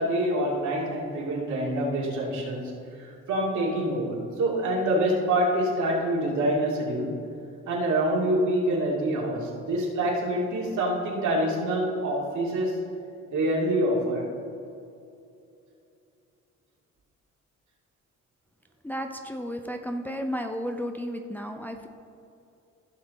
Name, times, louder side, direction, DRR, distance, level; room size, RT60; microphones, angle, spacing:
voice 1, 0.0-2.7 3.0-7.1 7.7-12.8 13.3-14.3, right 1 dB, 75° right, -3 dB, 2.5 m, -26 dB
voice 2, 18.8-21.9, equal, 5° left, 4 dB, 0.6 m, -33 dB
15.5 x 5.9 x 4.1 m, 2.6 s
cardioid pair, 90°, 30 cm